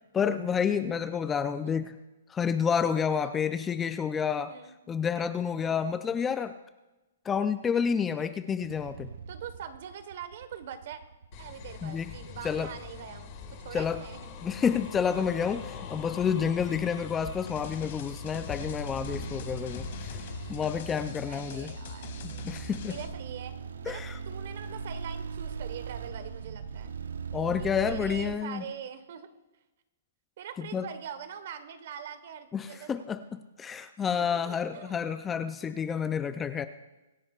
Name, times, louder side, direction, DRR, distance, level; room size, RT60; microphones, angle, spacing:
voice 1, 0.1-1.9 2.3-4.5 4.9-6.5 7.2-9.1 11.8-12.1 12.4-12.7 13.7-14.0 14.4-20.2 20.5-21.7 22.2-22.9 23.9-24.1 27.3-28.6 30.6-30.9 32.5-36.7, left 7 dB, 10° left, 10 dB, 0.4 m, -29 dB
voice 2, 4.4-4.7 5.6-5.8 9.3-11.0 11.4-14.3 21.3-22.1 22.9-23.5 23.8-26.9 27.6-29.3 30.4-33.0 34.3-35.0 35.7-35.8, right 8 dB, 50° right, 11 dB, 1.2 m, -43 dB
sound 1, 8.6-28.4, right 6 dB, 85° right, 0.7 m, -42 dB
sound 2, 11.3-20.8, left 7 dB, 30° left, 1.7 m, -43 dB
sound 3, 17.5-23.1, left 8 dB, 50° left, 2.2 m, -44 dB
24.5 x 9.8 x 2.4 m, 1.1 s
hypercardioid pair, 160°, 0 cm